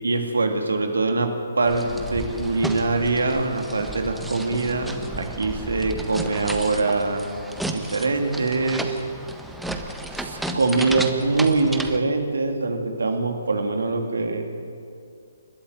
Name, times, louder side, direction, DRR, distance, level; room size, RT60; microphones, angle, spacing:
voice 1, 0.0-7.3 7.7-8.9 10.1-14.4, right 3 dB, 65° right, 4 dB, 2.9 m, -23 dB
sound 1, 1.7-12.0, right 1 dB, ahead, 1.3 m, -33 dB
30.0 x 13.0 x 9.3 m, 2.3 s
figure-of-eight pair, 135°, 0 cm